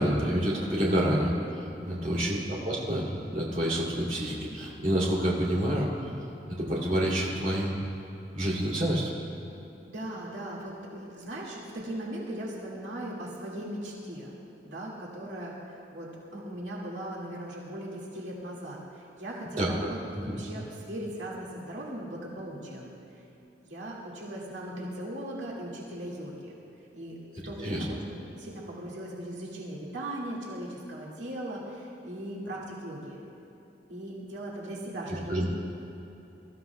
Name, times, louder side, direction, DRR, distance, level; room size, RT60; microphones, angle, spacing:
voice 1, 0.0-6.1 6.4-7.7 8.3-9.1 19.6-19.7 20.3-20.4 27.6-27.8 35.3-35.5, equal, 45° right, -5 dB, 2.8 m, -28 dB
voice 2, 1.8-2.4 9.8-14.3 14.6-22.9 23.7-26.5 26.9-27.2 27.4-33.2 33.9-35.4, right 1 dB, 90° right, -5 dB, 2.1 m, -38 dB
22.5 x 13.5 x 2.3 m, 3.0 s
head